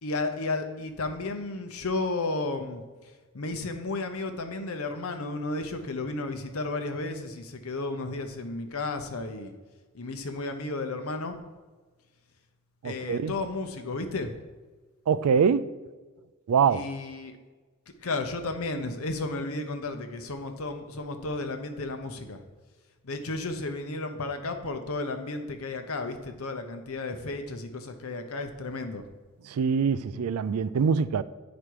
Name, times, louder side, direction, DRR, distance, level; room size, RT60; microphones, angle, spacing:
voice 1, 0.0-2.8 3.3-9.5 9.9-11.4 12.8-14.3 16.7-17.4 18.0-22.4 23.0-29.0, left 2 dB, 70° left, 0.8 m, -33 dB
voice 2, 12.8-13.4 15.1-15.7 16.5-16.9 29.5-31.2, right 6 dB, 90° right, 0.4 m, -24 dB
8.6 x 5.1 x 4.7 m
head